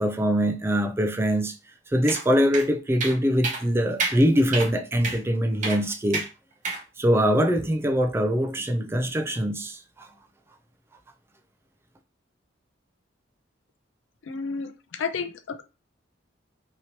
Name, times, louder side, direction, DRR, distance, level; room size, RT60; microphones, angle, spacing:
voice 1, 0.0-1.6 1.9-6.2 7.0-10.1, equal, 15° right, 0.3 m, -23 dB
sound 1, 2.1-2.2 2.5-2.6 3.0-3.2 3.4-3.6 4.0-4.2 4.5-4.7 5.0-5.2 5.6-5.8 6.1-6.3 6.6-6.8, right 4 dB, 40° right, 0.7 m, -28 dB
voice 2, 14.3-15.6, left 5 dB, 80° left, 0.4 m, -32 dB
2.9 x 2.8 x 2.8 m
head